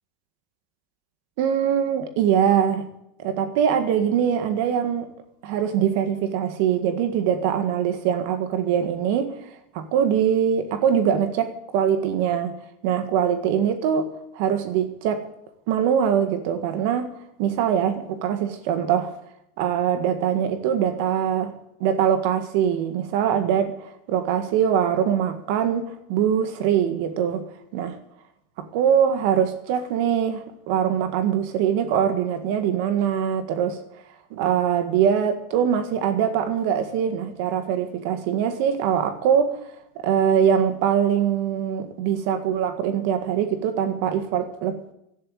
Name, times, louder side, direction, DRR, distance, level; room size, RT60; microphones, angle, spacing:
voice 1, 1.4-2.9 3.2-5.1 5.4-9.4 9.7-12.5 12.8-15.2 15.7-17.1 17.4-19.1 19.6-21.5 21.8-27.4 27.7-28.0 28.6-33.8 34.3-39.7 40.0-44.9, right 8 dB, 65° right, 1.7 m, -23 dB
12.0 x 10.5 x 9.0 m
supercardioid pair, 115°, 0 cm